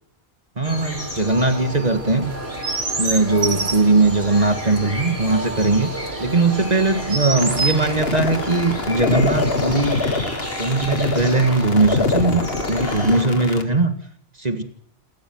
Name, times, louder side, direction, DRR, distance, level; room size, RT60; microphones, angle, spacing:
sound 1, 0.6-13.2, equal, 10° left, 7.1 m, -31 dB
voice 1, 0.6-2.3 3.0-5.9 6.2-10.0 10.6-13.9 14.4-14.6, right 3 dB, 40° right, 8 dB, 1.9 m, -19 dB
Chirp tweet, 2.2-8.9, right 4 dB, 70° right, 2.0 m, -30 dB
sound 2, 7.4-13.6, left 3 dB, 65° left, 2.1 m, -25 dB
28.0 x 13.0 x 8.0 m, 0.65 s
omnidirectional pair, 1.1 m